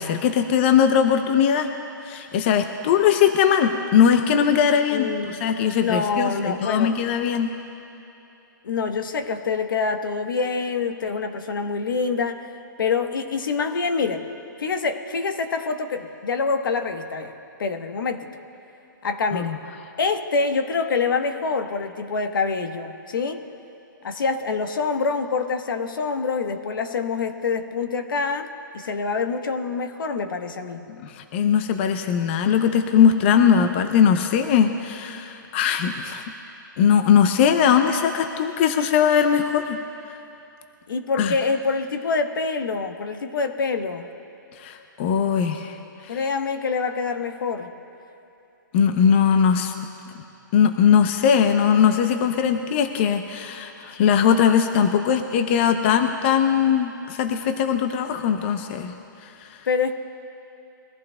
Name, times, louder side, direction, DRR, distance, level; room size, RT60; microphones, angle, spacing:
voice 1, 0.0-1.7 2.0-7.5 19.3-19.6 30.9-36.2 36.8-39.8 41.2-41.3 44.6-45.8 46.0-46.2 48.7-49.7 50.5-58.9 59.2-59.6, left 8 dB, 35° left, 7 dB, 0.6 m, -20 dB
voice 2, 4.9-5.4 5.8-6.9 8.6-12.5 12.8-14.2 14.6-17.3 17.6-18.3 19.0-19.6 20.0-23.4 24.0-30.8 40.9-44.1 46.1-47.7 59.7-59.9, left 4 dB, 75° left, 7 dB, 1.1 m, -26 dB
23.0 x 15.0 x 2.3 m, 2.8 s
hypercardioid pair, 160°, 11 cm